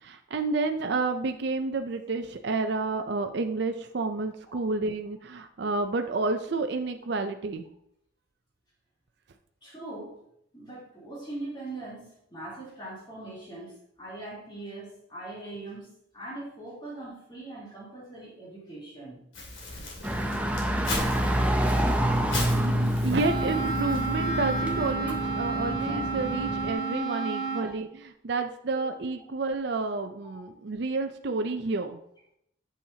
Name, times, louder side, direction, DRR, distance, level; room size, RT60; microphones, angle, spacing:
voice 1, 0.0-7.6 21.8-22.3 22.6-32.0, right 3 dB, 60° right, 6 dB, 0.5 m, -30 dB
voice 2, 9.6-10.2 10.5-19.2 24.6-24.7 25.8-26.7 27.4-27.8 28.7-28.8 30.2-30.4, right 2 dB, 25° left, -6 dB, 3.3 m, -42 dB
Crumpling crinkling, 19.3-24.9, left 2 dB, 75° left, 2.4 m, -38 dB
sound 1, 20.0-26.7, equal, 5° right, 0.6 m, -28 dB
Wind instrument woodwind instrument, 23.1-27.7, right 4 dB, 55° left, 1.9 m, -31 dB
8.4 x 7.0 x 2.8 m, 0.74 s
head